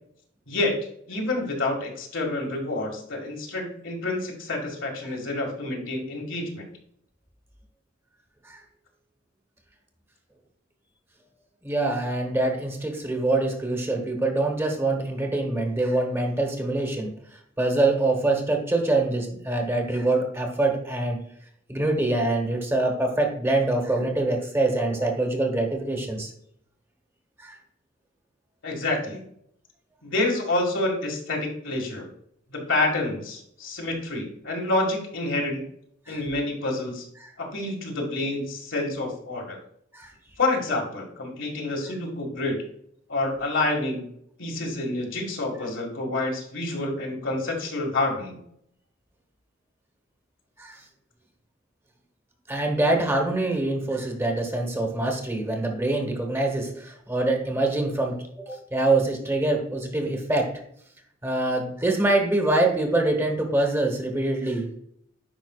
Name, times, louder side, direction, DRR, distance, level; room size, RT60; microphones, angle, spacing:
voice 1, 0.5-0.8 1.1-6.7 28.6-29.2 30.0-32.1 32.5-35.6 36.1-37.0 37.4-39.6 40.4-42.6 43.1-44.0 44.4-48.4, left 2 dB, 80° left, 0 dB, 1.9 m, -28 dB
voice 2, 11.6-17.1 17.6-21.2 21.7-26.3 27.4-27.6 36.1-36.2 37.2-37.3 39.9-40.1 50.6-50.8 52.5-60.5 61.2-64.7, right 2 dB, 15° right, 2 dB, 1.2 m, -25 dB
9.9 x 5.2 x 2.4 m, 0.68 s
head